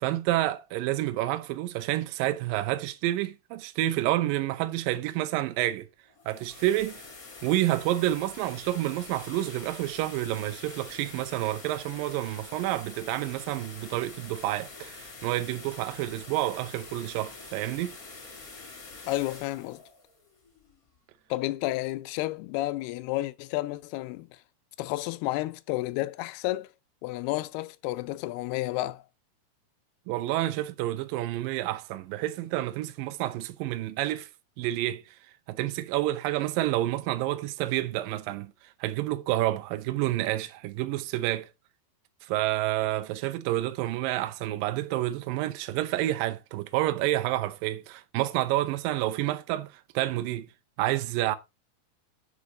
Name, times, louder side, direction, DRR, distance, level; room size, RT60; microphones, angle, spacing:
voice 1, 0.0-5.9 6.3-7.0 7.4-18.0 30.1-34.3 34.6-35.2 35.5-38.5 38.8-41.5 42.2-50.5 50.8-51.4, right 15 dB, 90° right, 2.0 m, -29 dB
sound 1, 6.0-21.0, left 3 dB, 30° left, 1.6 m, -46 dB
voice 2, 19.1-19.8 21.3-24.4 24.8-26.7 27.0-29.0, left 17 dB, 80° left, 2.3 m, -31 dB
8.3 x 5.3 x 4.9 m
omnidirectional pair, 5.1 m